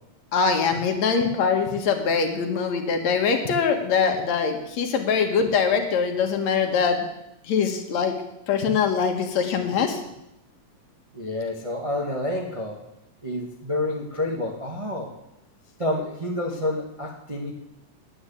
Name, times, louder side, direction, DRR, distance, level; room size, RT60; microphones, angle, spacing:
voice 1, 0.3-7.1 7.4-8.2 8.5-10.0, left 6 dB, 65° left, 4 dB, 2.5 m, -23 dB
voice 2, 11.1-12.8 13.2-15.1 15.8-17.5, left 1 dB, 40° right, 0 dB, 0.4 m, -28 dB
9.6 x 9.5 x 8.3 m, 0.86 s
omnidirectional pair, 3.5 m